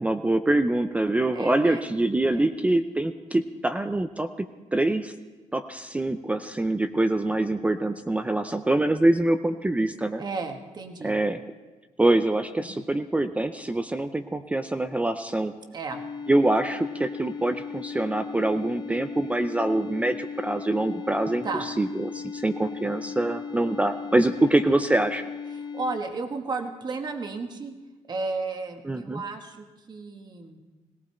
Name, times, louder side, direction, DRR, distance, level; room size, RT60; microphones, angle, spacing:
voice 1, 0.0-4.3 4.7-5.1 5.5-10.2 11.0-11.4 12.0-15.5 16.3-21.4 21.8-25.3 28.8-29.2, right 2 dB, 10° right, 8 dB, 0.5 m, -24 dB
voice 2, 1.3-1.8 2.3-2.5 10.2-11.2 12.7-12.8 15.7-16.0 21.4-21.7 24.4-24.5 25.5-27.7 28.0-30.6, right 3 dB, 35° right, 5 dB, 1.4 m, -33 dB
sound 1, 15.9-26.0, left 6 dB, 35° left, 0.7 m, -37 dB
18.0 x 18.0 x 4.4 m, 1.2 s
cardioid pair, 145°, 13 cm